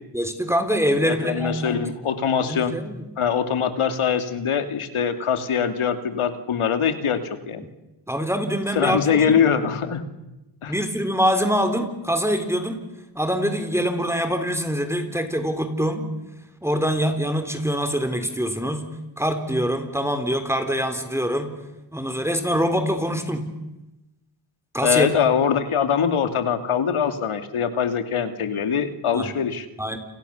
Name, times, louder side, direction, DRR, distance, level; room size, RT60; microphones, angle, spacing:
voice 1, 0.1-1.8 2.5-3.0 8.1-9.4 10.7-12.8 13.2-16.1 16.6-18.9 19.2-21.5 21.9-23.5 24.7-25.1 29.1-29.3 29.8-30.0, equal, 5° right, 7 dB, 3.6 m, -24 dB
voice 2, 1.1-2.8 3.2-7.7 8.7-10.0 10.6-10.7 24.8-29.7, left 7 dB, 85° left, 8 dB, 2.6 m, -23 dB
29.5 x 28.0 x 7.1 m, 0.97 s
cardioid pair, 75°, 49 cm